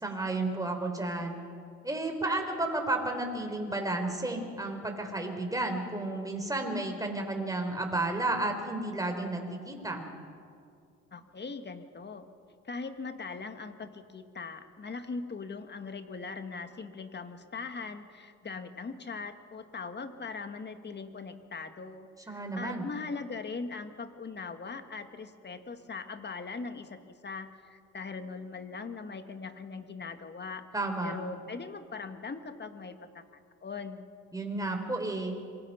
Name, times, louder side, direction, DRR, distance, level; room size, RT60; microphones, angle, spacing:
voice 1, 0.0-1.4 1.8-10.0 22.3-22.8 30.7-31.1 34.3-35.3, right 2 dB, 10° right, 4 dB, 4.2 m, -32 dB
voice 2, 11.1-12.3 12.7-30.6 31.0-33.3 33.6-34.1, left 4 dB, 35° left, 8 dB, 1.9 m, -40 dB
26.0 x 23.0 x 5.7 m, 2.3 s
cardioid pair, 90°, 30 cm